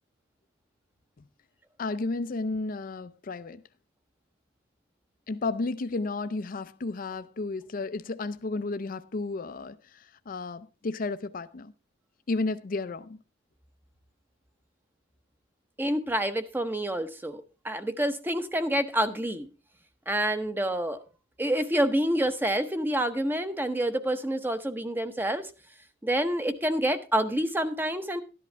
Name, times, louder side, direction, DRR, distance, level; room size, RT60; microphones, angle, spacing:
voice 1, 1.8-3.6 5.3-11.7 12.3-13.2, left 3 dB, 50° left, 0.5 m, -32 dB
voice 2, 15.8-19.5 20.1-21.0 21.4-25.5 26.0-28.2, right 1 dB, 10° right, 0.8 m, -28 dB
12.5 x 11.0 x 3.3 m
head